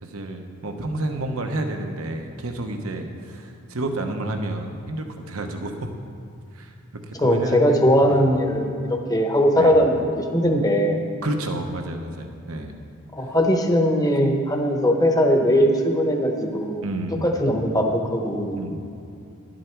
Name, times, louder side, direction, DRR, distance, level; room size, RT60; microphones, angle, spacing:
voice 1, 0.0-5.9 6.5-6.7 7.1-8.2 9.6-9.7 11.2-12.8 16.8-17.3 18.6-19.0, right 2 dB, 70° right, 4 dB, 0.9 m, -30 dB
voice 2, 7.2-8.7 9.1-11.0 13.1-16.8 17.2-18.6, equal, 15° left, 3 dB, 1.0 m, -20 dB
11.5 x 11.5 x 4.6 m, 2.5 s
head